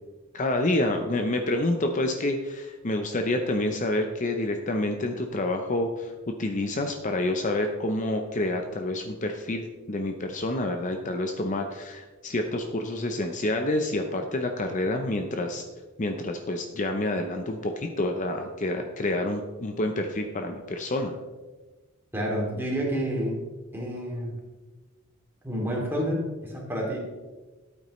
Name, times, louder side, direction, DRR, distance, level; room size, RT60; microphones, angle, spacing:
voice 1, 0.3-15.6 16.0-21.1, left 1 dB, 40° left, 5 dB, 0.7 m, -28 dB
voice 2, 22.1-23.4 23.7-24.4 25.4-27.0, equal, 10° right, -3 dB, 2.6 m, -29 dB
13.0 x 8.5 x 3.2 m, 1.2 s
head